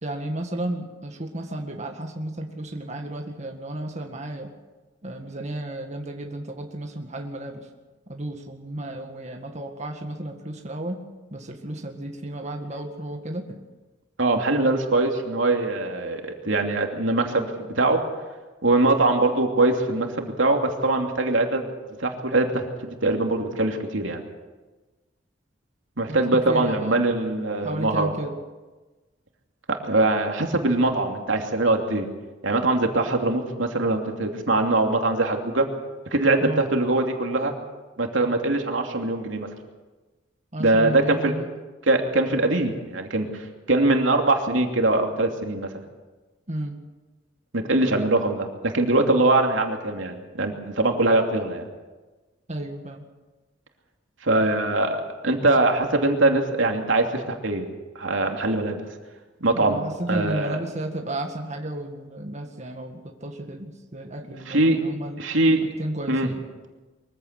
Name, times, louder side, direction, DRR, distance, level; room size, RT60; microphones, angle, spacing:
voice 1, 0.0-4.5 5.0-7.7 8.1-11.0 11.3-13.6 26.1-26.9 27.6-28.3 36.4-36.6 40.5-41.5 46.5-46.8 52.5-53.0 59.5-65.2 65.8-66.4, right 1 dB, 40° right, 3 dB, 1.9 m, -33 dB
voice 2, 14.2-17.5 17.7-18.0 18.6-21.7 22.0-24.2 26.0-28.1 29.7-32.1 32.4-35.7 36.1-37.5 38.0-39.5 40.6-41.3 41.9-45.7 47.5-51.7 54.2-57.7 57.9-58.8 59.4-59.8 60.1-60.6 64.5-64.8 65.2-65.7 66.1-66.3, right 2 dB, 90° right, 3 dB, 2.8 m, -22 dB
23.5 x 15.5 x 8.3 m, 1.2 s
head